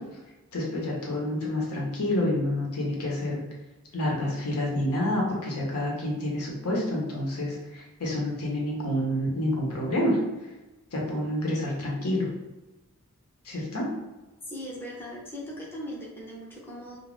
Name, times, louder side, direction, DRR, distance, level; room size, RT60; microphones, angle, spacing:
voice 1, 0.5-3.5 3.9-10.2 10.9-12.3 13.4-13.8, left 1 dB, 80° left, -2 dB, 0.8 m, -28 dB
voice 2, 14.4-17.0, equal, 10° left, -5 dB, 0.5 m, -39 dB
2.4 x 2.2 x 3.2 m, 1.1 s
head